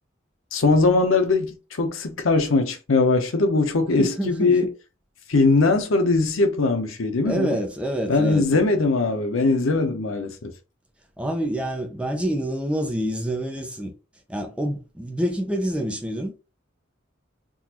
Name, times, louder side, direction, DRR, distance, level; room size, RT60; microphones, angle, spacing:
voice 1, 0.5-4.7 5.3-7.6 8.1-10.5, left 3 dB, 90° left, 0.8 m, -21 dB
voice 2, 4.0-4.6 7.2-8.4 11.2-13.9 14.3-16.3, right 1 dB, 5° right, 0.6 m, -27 dB
3.9 x 2.5 x 2.9 m
head